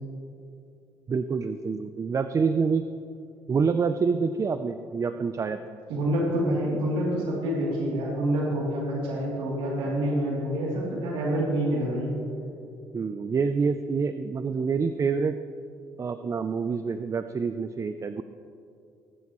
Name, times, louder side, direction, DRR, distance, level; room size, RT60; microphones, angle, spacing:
voice 1, 1.1-2.9 3.5-5.6 12.9-15.4 16.0-18.2, right 5 dB, 35° right, 10 dB, 0.5 m, -27 dB
voice 2, 5.9-12.2, right 1 dB, 75° right, -4 dB, 2.9 m, -27 dB
20.0 x 10.5 x 3.1 m, 2.6 s
supercardioid pair, 70°, 9 cm